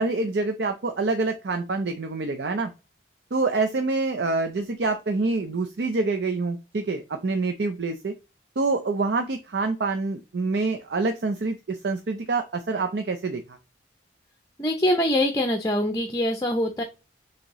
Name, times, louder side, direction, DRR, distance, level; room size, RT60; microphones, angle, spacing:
voice 1, 0.0-2.7 3.3-8.1 8.6-13.4, right 3 dB, 65° right, 6 dB, 0.5 m, -26 dB
voice 2, 14.6-16.8, left 1 dB, 20° left, 5 dB, 0.6 m, -24 dB
6.3 x 2.8 x 3.0 m, 0.29 s
head